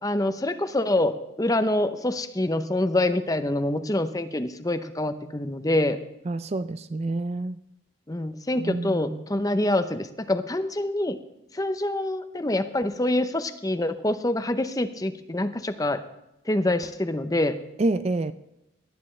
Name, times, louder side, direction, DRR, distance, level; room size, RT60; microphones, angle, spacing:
voice 1, 0.0-6.0 8.1-11.2 11.5-16.0 16.5-17.6, left 1 dB, 15° left, 10 dB, 0.7 m, -26 dB
voice 2, 6.3-7.6 8.6-9.3 17.8-18.3, right 2 dB, 30° right, 13 dB, 0.4 m, -28 dB
18.5 x 12.5 x 3.2 m, 0.90 s
head